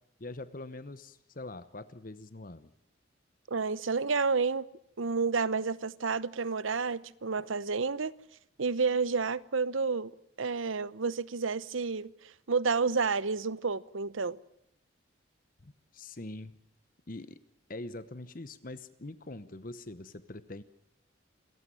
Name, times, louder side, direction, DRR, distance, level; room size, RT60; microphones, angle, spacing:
voice 1, 0.2-2.7 15.6-16.6 17.1-17.4 17.7-20.6, left 2 dB, 45° left, 1.0 m, -43 dB
voice 2, 3.5-4.7 5.0-8.1 8.6-10.1 10.4-12.1 12.5-14.4, right 4 dB, 80° right, 0.9 m, -30 dB
28.0 x 15.0 x 9.1 m
head